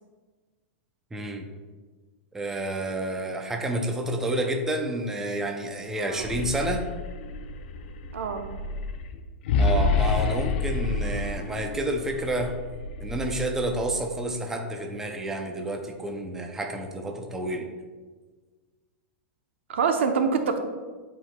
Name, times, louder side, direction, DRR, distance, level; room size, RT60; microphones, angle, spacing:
voice 1, 1.1-1.4 2.3-6.9 9.6-12.5 13.0-17.7, right 1 dB, 5° right, 3 dB, 0.5 m, -29 dB
sound 1, 6.0-14.2, left 3 dB, 60° left, 0.5 m, -29 dB
voice 2, 6.0-6.4 8.1-8.5 19.7-20.6, right 5 dB, 90° right, 6 dB, 0.8 m, -26 dB
10.5 x 4.6 x 2.3 m, 1.4 s
supercardioid pair, 160°, 6 cm